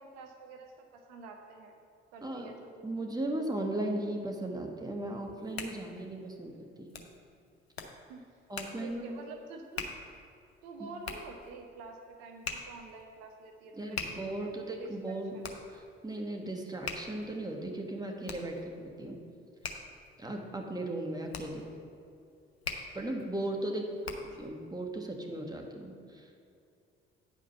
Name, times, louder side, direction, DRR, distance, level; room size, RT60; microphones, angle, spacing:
voice 1, 0.0-1.7 2.1-3.0 8.1-8.4 8.7-9.9 10.6-15.6 23.7-24.4, right 3 dB, 70° right, 3 dB, 0.9 m, -48 dB
voice 2, 2.8-6.9 8.5-9.1 10.8-10.9 13.8-15.3 15.7-19.2 20.2-21.7 22.9-23.9 24.4-26.5, right 1 dB, 15° right, 2 dB, 1.5 m, -37 dB
Hands, 5.1-24.5, left 4 dB, 90° left, 0.6 m, -45 dB
9.4 x 5.2 x 5.6 m, 2.4 s
figure-of-eight pair, 45°, 31 cm